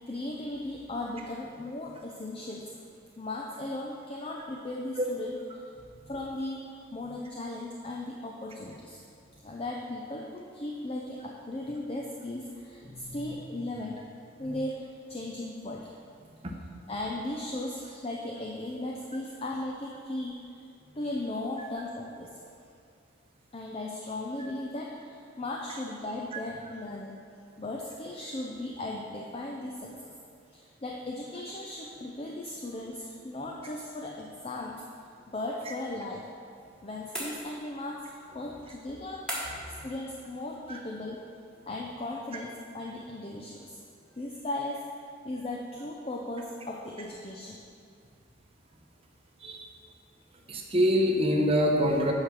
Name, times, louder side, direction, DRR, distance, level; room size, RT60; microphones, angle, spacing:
voice 1, 0.1-2.7 3.2-5.6 6.1-9.0 9.4-14.0 14.4-15.9 16.9-20.3 21.0-22.5 23.5-27.1 27.6-30.1 30.5-34.8 35.3-36.3 36.8-39.3 39.8-41.3 41.7-43.8 44.2-44.8 45.2-47.6, left 1 dB, 30° left, -1 dB, 0.5 m, -37 dB
sound 1, 37.1-37.9 39.3-39.8, equal, 5° left, 1.5 m, -37 dB
voice 2, 50.5-52.1, equal, 30° right, 1 dB, 0.8 m, -25 dB
8.4 x 4.9 x 6.0 m, 2.4 s
head